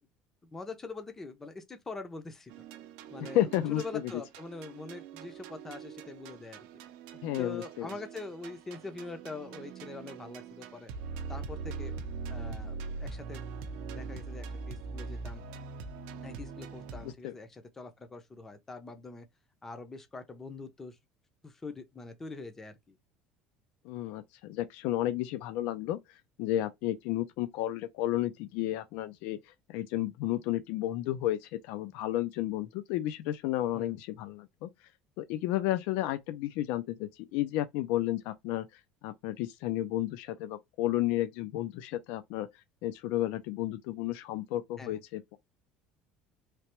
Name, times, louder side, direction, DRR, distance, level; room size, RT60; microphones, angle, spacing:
voice 1, 0.4-2.5 3.1-6.6 7.4-10.9 11.3-11.9 12.3-13.4 13.9-15.4 16.2-19.3 19.6-21.0 21.4-23.0 33.7-34.0 44.8-45.0, left 3 dB, 10° left, 0.5 m, -43 dB
sound 1, 2.5-17.1, right 4 dB, 65° right, 0.5 m, -42 dB
voice 2, 3.3-4.1 7.2-7.9 17.0-17.3 23.8-34.7 35.2-42.5 42.8-45.2, left 14 dB, 65° left, 0.4 m, -32 dB
3.2 x 2.9 x 2.9 m
cardioid pair, 175°, 3 cm